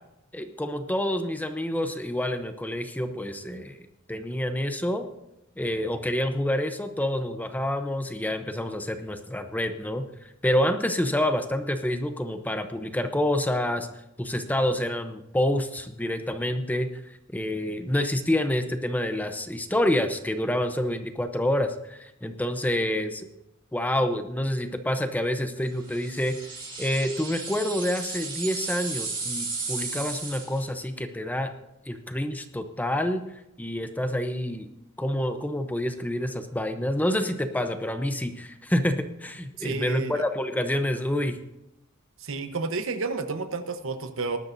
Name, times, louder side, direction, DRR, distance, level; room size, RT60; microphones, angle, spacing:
voice 1, 0.3-3.8 4.1-5.0 5.6-10.1 10.4-13.9 14.2-23.3 23.7-26.4 26.8-31.5 31.9-33.2 33.6-34.7 35.0-41.4, left 1 dB, 10° left, 8 dB, 0.7 m, -27 dB
sound 1, 25.9-30.7, right 4 dB, 25° right, 3.5 m, -34 dB
voice 2, 39.6-40.2 42.2-44.4, right 4 dB, 65° right, 9 dB, 1.0 m, -31 dB
19.0 x 12.0 x 2.7 m, 0.87 s
head